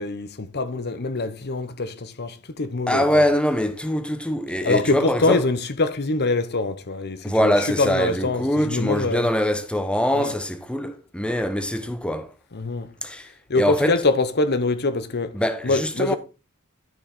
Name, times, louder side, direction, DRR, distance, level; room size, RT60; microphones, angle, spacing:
voice 1, 0.0-3.2 4.6-9.3 10.1-10.4 12.5-12.9 13.5-16.2, left 3 dB, 50° left, 1.0 m, -24 dB
voice 2, 2.9-5.4 7.2-12.3 13.0-13.3 13.5-14.0 15.3-16.2, equal, 5° left, 0.9 m, -23 dB
12.5 x 6.5 x 4.2 m
head